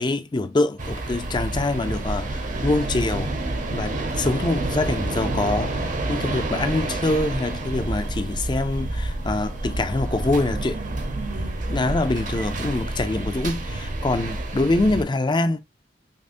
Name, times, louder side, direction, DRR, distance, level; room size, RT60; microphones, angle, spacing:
voice 1, 0.0-3.3 3.7-10.8 11.7-15.6, left 2 dB, 25° left, 0.5 m, -25 dB
sound 1, 0.8-15.0, right 2 dB, 45° right, 0.8 m, -28 dB
5.4 x 2.1 x 2.6 m
head